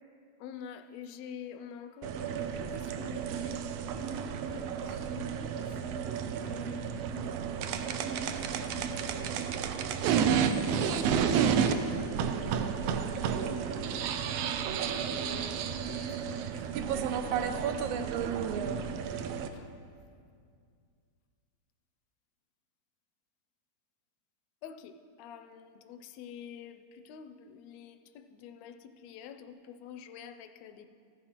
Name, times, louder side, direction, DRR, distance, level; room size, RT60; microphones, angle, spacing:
voice 1, 0.4-5.8 6.4-8.3 14.9-16.4 19.5-19.6 24.6-24.9 25.2-30.9, left 8 dB, 80° left, 8 dB, 1.6 m, -48 dB
sound 1, 2.0-19.5, right 7 dB, 80° right, 1.4 m, -31 dB
15.0 x 10.0 x 2.9 m, 2.2 s
omnidirectional pair, 3.4 m